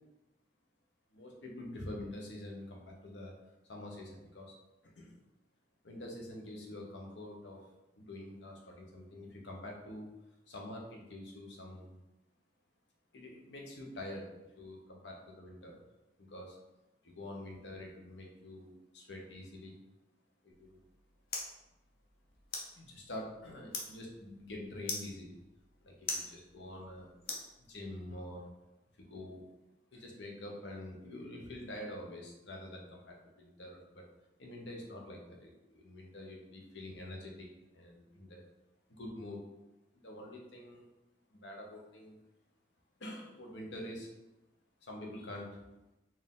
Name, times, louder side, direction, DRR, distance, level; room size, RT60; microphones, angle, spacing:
voice 1, 1.1-3.3 3.7-4.5 4.9-5.2 5.8-7.6 8.0-10.1 10.5-12.0 13.1-15.8 16.2-16.6 17.0-19.8 20.4-20.8 22.7-25.4 25.8-27.1 27.6-28.5 29.0-29.4 29.9-34.0 34.4-37.5 37.7-38.4 39.0-39.4 39.9-40.8 41.3-42.2 43.0-44.1 44.8-45.5, left 1 dB, 85° left, 0 dB, 0.9 m, -46 dB
sound 1, 20.5-28.1, left 3 dB, 55° left, 0.7 m, -45 dB
4.4 x 2.5 x 3.7 m, 0.98 s
head